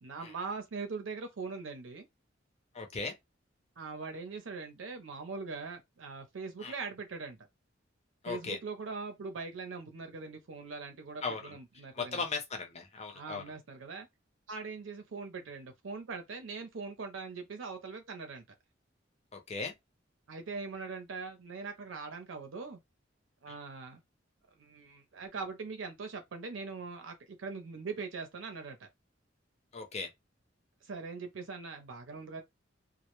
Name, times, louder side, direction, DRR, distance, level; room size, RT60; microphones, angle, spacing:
voice 1, 0.0-2.0 3.8-7.4 8.2-12.2 13.1-14.1 14.5-18.4 20.3-22.8 23.4-24.0 24.6-28.9 30.8-32.4, right 4 dB, 90° right, 0.5 m, -41 dB
voice 2, 2.7-3.1 6.6-6.7 8.2-8.6 11.2-11.6 11.9-13.4 19.3-19.7 23.5-23.6 29.7-30.1, left 4 dB, 35° left, 0.6 m, -37 dB
2.1 x 2.0 x 2.9 m
head